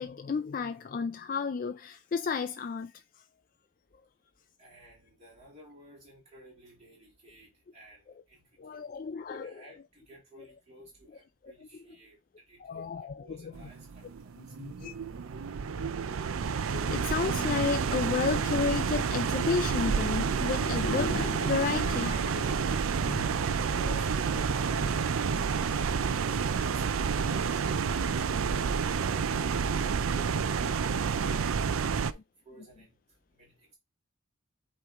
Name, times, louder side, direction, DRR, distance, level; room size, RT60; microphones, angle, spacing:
voice 1, 0.0-3.2 8.6-9.6 11.4-11.5 12.6-13.5 14.6-14.9 15.8-15.9 16.7-24.1, left 5 dB, 40° left, 0.3 m, -33 dB
voice 2, 4.6-8.9 9.3-12.2 12.5-14.5 23.9-24.3 24.6-29.4 29.7-30.6 31.0-32.0 32.4-33.0 33.3-33.8, equal, 35° right, 2.7 m, -54 dB
sound 1, 13.5-32.1, right 6 dB, 90° right, 0.5 m, -29 dB
8.3 x 3.1 x 3.6 m
head